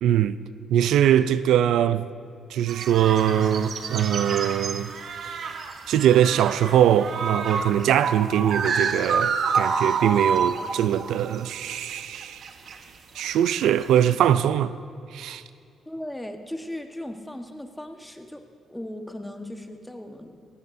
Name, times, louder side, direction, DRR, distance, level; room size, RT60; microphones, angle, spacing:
voice 1, 0.0-0.4 0.7-2.0 2.5-4.9 5.9-12.4 13.1-14.7 15.1-15.4, right 10 dB, 80° right, 0.4 m, -22 dB
sound 1, 2.7-11.4 11.7-12.8 13.2-13.5 13.8-14.2, right 5 dB, 60° right, 1.1 m, -28 dB
voice 2, 15.9-18.4 18.7-20.4, left 1 dB, 5° left, 1.3 m, -37 dB
19.0 x 16.5 x 2.7 m
cardioid pair, 90°, 0 cm